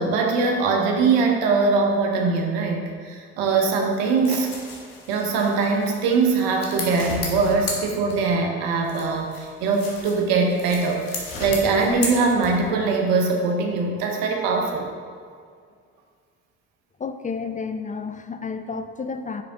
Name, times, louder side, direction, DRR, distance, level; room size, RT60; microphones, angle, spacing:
voice 1, 0.0-4.5 5.1-14.8, right 4 dB, 85° right, 1 dB, 0.9 m, -22 dB
sound 1, 3.9-8.5 8.8-12.8, left 3 dB, 80° left, 1.3 m, -34 dB
voice 2, 17.0-19.4, left 5 dB, 25° left, 8 dB, 0.4 m, -31 dB
9.1 x 3.4 x 3.7 m, 2.1 s
hypercardioid pair, 55°, 35 cm